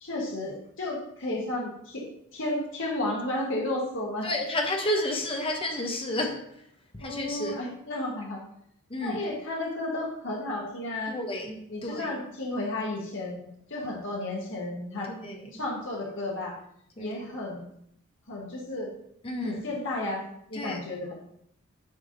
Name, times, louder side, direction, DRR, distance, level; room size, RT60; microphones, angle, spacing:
voice 1, 0.0-2.0 2.3-4.3 7.0-8.4 9.0-11.2 11.7-15.1 15.5-16.5 17.0-17.7 18.3-19.0 19.4-20.2 20.5-21.1, left 2 dB, 60° left, 1.7 m, -33 dB
voice 2, 4.2-6.5 6.9-7.6 8.9-9.2 11.1-12.2 15.2-15.4 17.0-17.2 19.2-19.6 20.5-20.8, left 1 dB, 25° left, 1.0 m, -31 dB
9.5 x 3.6 x 4.1 m
head